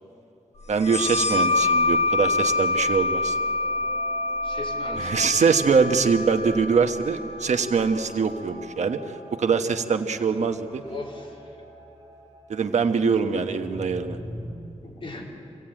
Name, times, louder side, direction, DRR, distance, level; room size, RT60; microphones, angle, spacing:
voice 1, 0.7-3.4 5.0-9.0 9.4-10.8 12.5-14.2, right 5 dB, 75° right, 6 dB, 1.2 m, -23 dB
sound 1, 0.8-8.1, left 3 dB, 80° left, 5.0 m, -26 dB
sound 2, 2.7-14.5, equal, 25° left, 5.4 m, -44 dB
voice 2, 4.4-5.5 10.8-11.6 14.8-15.3, left 2 dB, 45° left, -2 dB, 4.1 m, -38 dB
25.5 x 17.0 x 8.9 m, 2.8 s
wide cardioid pair, 130°, 12 cm